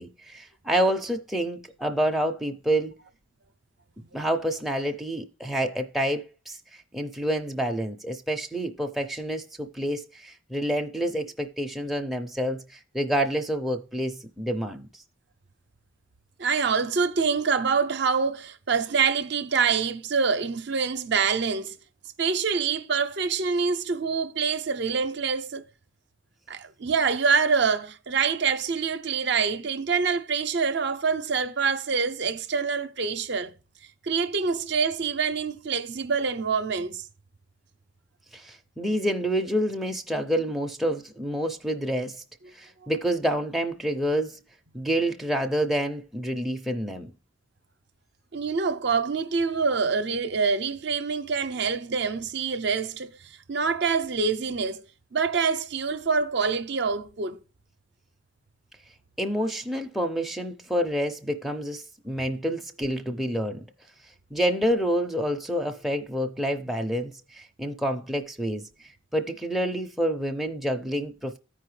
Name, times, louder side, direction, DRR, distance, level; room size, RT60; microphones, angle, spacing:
voice 1, 0.0-2.9 4.1-6.6 6.9-14.9 38.3-42.2 42.5-44.4 44.7-47.1 59.2-63.7 64.3-68.6 69.1-71.4, equal, ahead, 0.5 m, -28 dB
voice 2, 16.4-21.8 22.2-25.6 26.5-33.5 34.0-37.0 42.8-42.9 48.3-54.8 55.1-57.4, right 5 dB, 55° right, 0.6 m, -26 dB
13.5 x 4.7 x 3.2 m
head